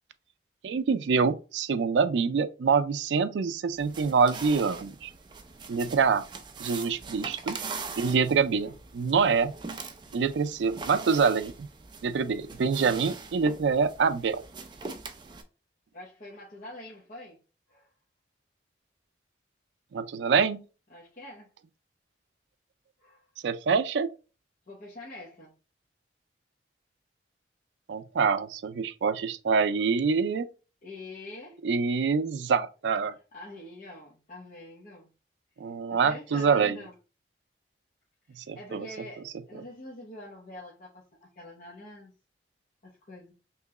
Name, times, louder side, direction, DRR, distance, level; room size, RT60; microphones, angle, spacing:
voice 1, 0.6-5.1 5.7-6.2 6.6-7.6 8.0-9.5 10.1-11.7 12.0-14.4 19.9-20.6 23.4-24.1 27.9-30.5 31.6-33.2 35.6-36.8 38.4-38.8, right 5 dB, 90° right, 0.4 m, -25 dB
sound 1, 3.8-15.4, right 4 dB, 25° right, 0.4 m, -42 dB
voice 2, 15.9-17.4 17.7-17.9 20.9-21.5 23.0-23.3 24.7-25.5 30.8-31.6 33.3-35.1 35.9-36.9 38.3-42.1 42.8-43.3, left 1 dB, 50° left, 0.8 m, -45 dB
3.0 x 2.9 x 3.6 m
head